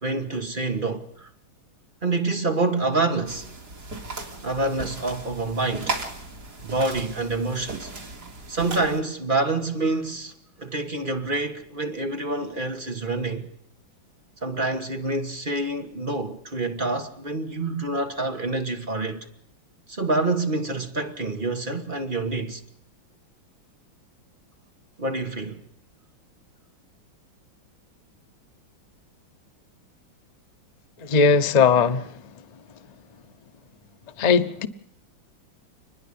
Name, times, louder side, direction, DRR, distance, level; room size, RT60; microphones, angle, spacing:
voice 1, 0.0-1.3 2.0-3.5 4.4-6.0 6.6-7.9 8.5-10.3 10.6-13.5 14.4-19.3 19.9-22.6 25.0-25.6, right 3 dB, 30° right, 1.4 m, -27 dB
sound 1, 3.3-9.0, right 3 dB, 50° right, 3.8 m, -36 dB
voice 2, 31.0-32.0 34.2-34.7, left 5 dB, 75° left, 0.3 m, -18 dB
30.0 x 10.5 x 8.6 m
omnidirectional pair, 2.2 m